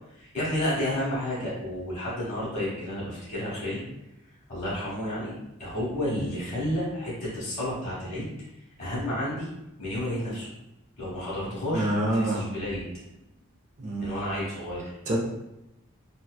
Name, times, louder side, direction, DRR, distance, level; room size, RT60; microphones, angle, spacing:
voice 1, 0.1-3.8 4.5-5.3 5.6-8.3 8.8-9.5 9.8-10.5 11.0-13.0 14.0-14.9, left 1 dB, 35° left, -8 dB, 1.0 m, -31 dB
voice 2, 11.7-12.5 13.8-14.2 15.1-15.2, right 1 dB, 35° right, -2 dB, 0.3 m, -26 dB
2.7 x 2.1 x 2.2 m, 0.89 s
head